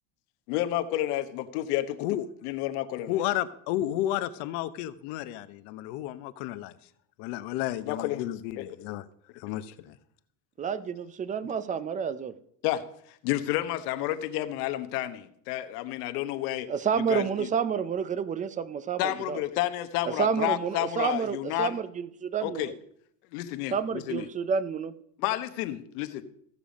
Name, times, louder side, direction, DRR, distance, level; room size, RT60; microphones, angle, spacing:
voice 1, 0.5-2.0 2.4-3.2 7.8-8.2 8.6-8.7 8.9-9.0 12.6-12.8 13.1-16.7 17.0-17.5 19.0-21.8 22.4-22.7 23.3-24.3 25.2-26.2, left 14 dB, 80° left, 10 dB, 1.2 m, -30 dB
voice 2, 3.1-6.7 7.2-9.0 9.3-10.0, left 13 dB, 60° left, 13 dB, 1.0 m, -32 dB
voice 3, 10.6-12.3 16.7-19.4 20.0-22.7 23.7-24.9, right 7 dB, 15° right, 14 dB, 0.5 m, -29 dB
15.0 x 6.9 x 5.2 m, 0.68 s
supercardioid pair, 140°, 46 cm